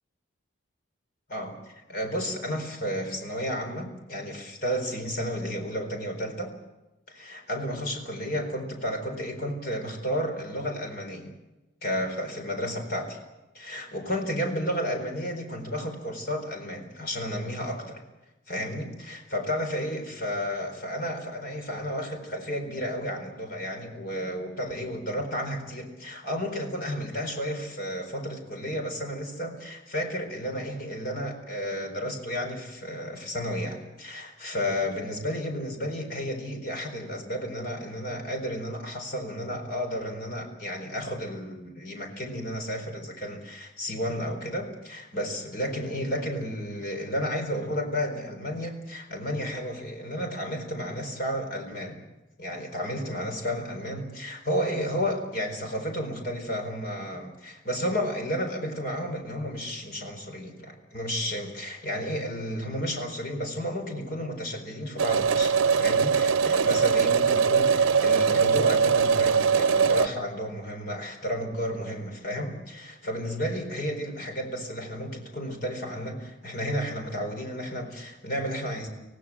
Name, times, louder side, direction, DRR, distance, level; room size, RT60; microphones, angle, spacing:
voice 1, 1.9-6.5 7.1-11.3 11.8-13.2 13.5-18.0 18.5-52.0 52.4-78.9, equal, 45° left, 4 dB, 4.4 m, -32 dB
sound 1, 65.0-70.1, right 6 dB, 90° right, 0.7 m, -21 dB
26.0 x 17.0 x 7.5 m, 1.0 s
head